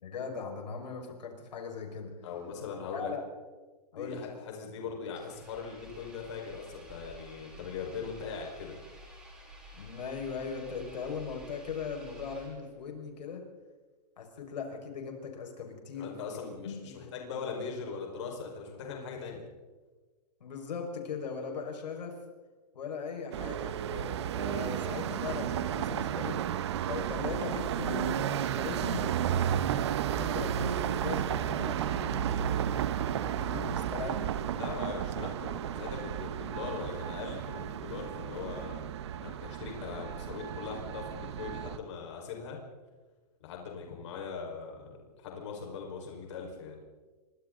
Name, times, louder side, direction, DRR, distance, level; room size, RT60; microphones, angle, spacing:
voice 1, 0.0-2.1 2.9-3.3 3.9-4.3 9.7-13.4 14.2-16.1 16.6-17.4 20.4-22.2 22.7-26.4 26.8-32.5 33.2-34.6, left 5 dB, 85° left, 2 dB, 5.7 m, -39 dB
voice 2, 2.2-3.1 3.9-8.8 15.9-19.4 34.6-38.8 39.2-42.6 43.4-46.8, left 5 dB, 45° left, 0 dB, 5.1 m, -40 dB
Engine, 5.1-12.9, equal, 5° right, 5.4 m, -51 dB
sound 1, 23.3-41.8, right 10 dB, 40° right, 1.2 m, -33 dB
29.0 x 24.5 x 4.0 m, 1.3 s
hypercardioid pair, 175°, 21 cm